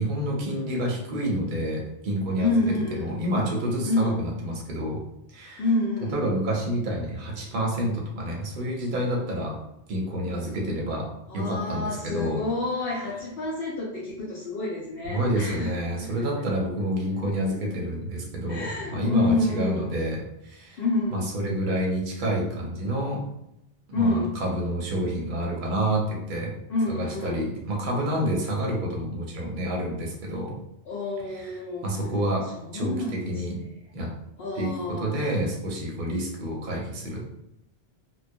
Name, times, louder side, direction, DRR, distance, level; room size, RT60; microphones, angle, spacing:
voice 1, 0.0-5.0 5.3-5.6 6.1-9.6 9.9-12.4 15.0-20.8 21.1-23.2 23.9-26.6 26.9-30.6 31.3-32.5 32.7-33.6 33.9-34.1 34.6-37.2, right 1 dB, 55° right, -1 dB, 0.7 m, -28 dB
voice 2, 2.4-3.1 3.8-4.2 5.6-6.2 11.3-16.1 18.5-19.9 20.8-21.2 23.9-24.4 26.7-27.5 30.9-31.9 32.6-33.7 34.4-35.2, left 2 dB, 65° left, -5 dB, 0.7 m, -28 dB
2.2 x 2.1 x 2.6 m, 0.83 s
omnidirectional pair, 1.2 m